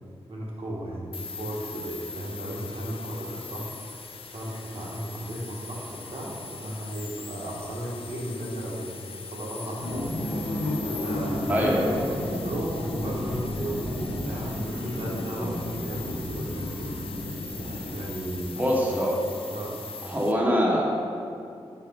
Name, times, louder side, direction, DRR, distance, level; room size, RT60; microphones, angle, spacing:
voice 1, 0.3-3.7 4.3-8.9 9.3-10.4 10.8-11.7 12.4-16.9 17.9-18.9 19.5-19.8, right 1 dB, 65° right, -4 dB, 1.2 m, -35 dB
sound 1, 1.1-20.3, left 5 dB, 60° left, 0.4 m, -42 dB
sound 2, 9.7-18.3, left 1 dB, 90° left, 0.9 m, -32 dB
voice 2, 11.5-12.1 18.5-19.1 20.0-20.8, equal, 15° right, -3 dB, 0.8 m, -24 dB
4.7 x 4.2 x 5.2 m, 2.5 s
wide cardioid pair, 120°, 11 cm